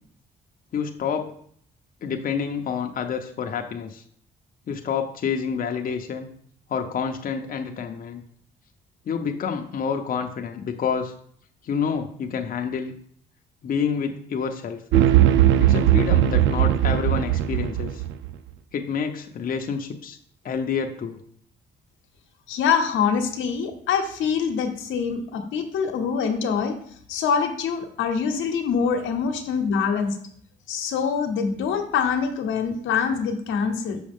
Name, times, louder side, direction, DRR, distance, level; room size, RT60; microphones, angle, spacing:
voice 1, 0.7-1.4 2.0-4.0 4.7-6.3 6.7-8.2 9.1-11.1 11.6-12.9 13.6-14.8 15.6-18.0 18.7-20.2 20.4-21.2, left 6 dB, 45° left, 4 dB, 0.6 m, -28 dB
sound 1, 14.9-18.3, right 12 dB, 70° right, 0.4 m, -19 dB
voice 2, 22.5-26.8 27.1-30.2 30.7-34.0, left 6 dB, 85° left, 5 dB, 0.9 m, -24 dB
6.2 x 4.8 x 3.6 m, 0.62 s
cardioid pair, 90°, 20 cm